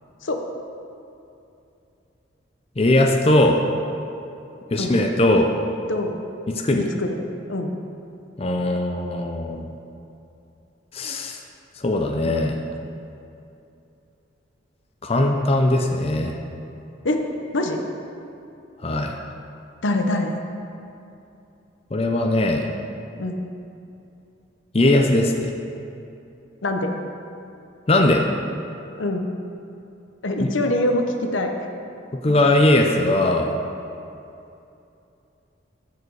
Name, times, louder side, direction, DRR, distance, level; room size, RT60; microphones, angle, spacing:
voice 1, 2.8-3.6 4.7-5.5 6.5-6.8 8.4-9.7 10.9-11.4 11.8-12.6 15.0-16.3 18.8-19.1 21.9-22.7 24.7-25.5 27.9-28.3 32.2-33.5, left 1 dB, 30° left, 2 dB, 0.5 m, -19 dB
voice 2, 6.7-7.2 7.5-7.7 17.0-17.2 17.5-17.8 19.8-20.3 23.2-23.4 26.6-26.9 29.0-29.3 30.2-31.7, left 1 dB, 85° left, 4 dB, 0.9 m, -24 dB
14.5 x 5.0 x 4.7 m, 2.7 s
head